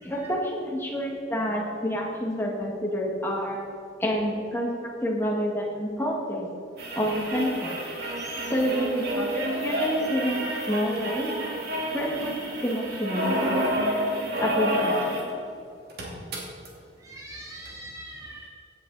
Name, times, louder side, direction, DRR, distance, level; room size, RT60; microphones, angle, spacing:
voice 1, 0.0-3.6 4.0-6.5 7.0-7.7 8.5-11.3 11.9-13.8 14.4-15.2, equal, 10° left, -2 dB, 2.3 m, -28 dB
sound 1, 6.8-15.3 15.6-15.7 15.9-16.7 17.7-17.8, equal, 55° right, 2.6 m, -29 dB
voice 2, 8.2-8.5 17.0-18.5, right 1 dB, 15° right, 0 dB, 0.9 m, -42 dB
16.5 x 10.0 x 4.3 m, 2.4 s
head